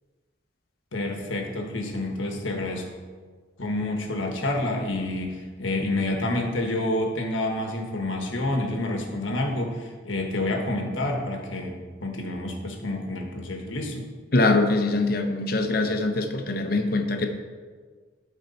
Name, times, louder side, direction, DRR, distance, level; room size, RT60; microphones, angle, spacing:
voice 1, 0.9-2.9 3.6-14.0, left 1 dB, 80° left, 2 dB, 1.3 m, -28 dB
voice 2, 14.3-17.3, left 2 dB, 50° left, 5 dB, 0.7 m, -23 dB
12.5 x 4.5 x 4.2 m, 1.5 s
head